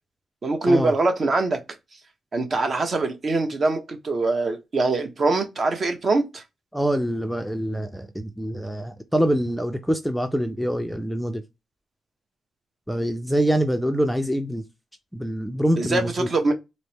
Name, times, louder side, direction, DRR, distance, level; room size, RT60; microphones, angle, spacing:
voice 1, 0.4-1.6 2.3-6.4 15.8-16.5, right 3 dB, 45° right, 0.9 m, -23 dB
voice 2, 6.7-11.4 12.9-14.6 15.1-16.3, equal, ahead, 0.4 m, -25 dB
4.1 x 2.0 x 3.3 m
cardioid pair, 110°, 0 cm